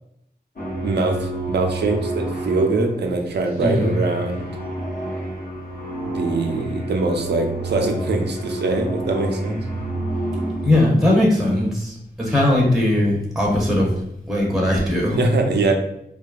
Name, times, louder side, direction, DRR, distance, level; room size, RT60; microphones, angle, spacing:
sound 1, 0.6-11.1, right 1 dB, 60° left, 0.7 m, -29 dB
voice 1, 0.8-4.5 6.0-9.6 15.2-15.7, right 3 dB, 80° right, 4 dB, 0.4 m, -23 dB
voice 2, 3.6-4.0 10.6-13.9 14.3-15.2, left 1 dB, ahead, -2 dB, 0.6 m, -19 dB
2.7 x 2.2 x 2.3 m, 0.79 s
wide cardioid pair, 90°, 17 cm